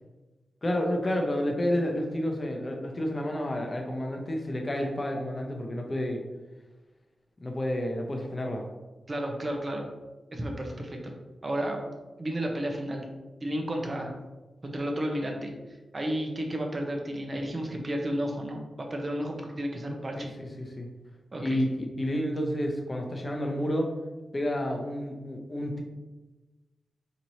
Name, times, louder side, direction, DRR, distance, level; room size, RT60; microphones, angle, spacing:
voice 1, 0.6-6.2 7.4-8.6 20.2-20.9 21.4-23.9 24.3-25.8, equal, 30° left, 2 dB, 0.6 m, -30 dB
voice 2, 9.1-9.9 10.3-11.1 11.4-11.8 12.2-13.1 13.4-14.1 14.6-15.5 15.9-20.3 21.3-21.6, right 1 dB, 35° right, 2 dB, 0.7 m, -32 dB
4.3 x 3.0 x 2.7 m, 1.2 s
wide cardioid pair, 105°, 0 cm